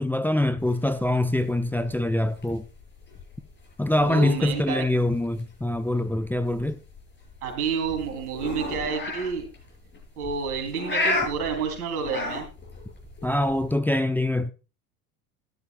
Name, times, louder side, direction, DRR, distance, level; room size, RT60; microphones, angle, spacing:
voice 1, 0.0-2.6 3.8-6.8 13.2-14.5, left 1 dB, 5° left, 0.6 m, -24 dB
sound 1, 0.6-13.8, left 2 dB, 25° left, 6.8 m, -35 dB
voice 2, 4.0-4.8 7.4-9.5 10.2-12.5, right 6 dB, 80° right, 3.7 m, -29 dB
14.0 x 12.0 x 2.4 m
hypercardioid pair, 75°, 44 cm